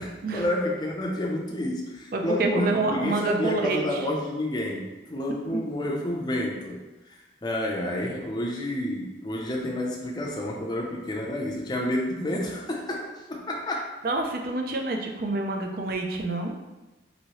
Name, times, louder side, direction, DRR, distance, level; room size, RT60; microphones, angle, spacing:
voice 1, 0.0-6.8 7.4-13.8, left 1 dB, 25° left, -1 dB, 0.4 m, -29 dB
voice 2, 2.1-3.8 5.5-5.6 14.0-16.5, right 3 dB, 50° right, 3 dB, 0.4 m, -27 dB
3.0 x 2.7 x 2.9 m, 1.1 s
head